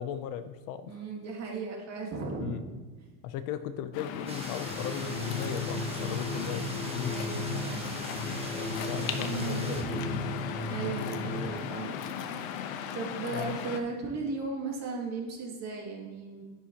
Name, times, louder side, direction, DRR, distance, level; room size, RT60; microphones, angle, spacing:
voice 1, 0.0-1.0 2.4-2.6 3.2-7.2 8.5-9.9 13.3-13.6, left 10 dB, 55° left, 11 dB, 0.6 m, -37 dB
voice 2, 0.8-2.7 6.0-6.2 7.1-7.8 9.1-10.3 10.7-12.0 12.9-16.4, right 4 dB, 40° right, -1 dB, 2.3 m, -36 dB
Waves surf, 3.9-13.8, left 8 dB, 85° left, 1.0 m, -37 dB
sound 1, 4.3-9.8, right 2 dB, 15° right, 1.2 m, -42 dB
sound 2, 4.7-11.5, left 1 dB, 10° left, 1.8 m, -36 dB
9.9 x 9.3 x 2.9 m, 1.3 s
cardioid pair, 145°, 39 cm